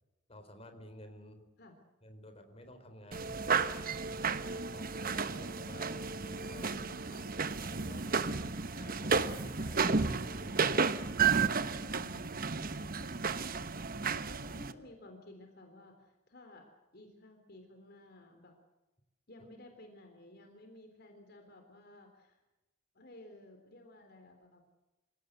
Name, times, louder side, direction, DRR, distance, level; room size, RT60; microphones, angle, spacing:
voice 1, 0.3-1.5 2.0-3.5 4.7-6.7 7.7-11.2, equal, 30° left, 8 dB, 4.1 m, -53 dB
sound 1, 3.1-14.7, right 5 dB, 50° right, 1.1 m, -33 dB
voice 2, 6.5-7.3 11.7-12.9 13.3-18.5 19.3-22.4 22.9-24.6, left 1 dB, 55° left, 5 dB, 3.7 m, -55 dB
28.0 x 17.5 x 8.0 m, 1.0 s
head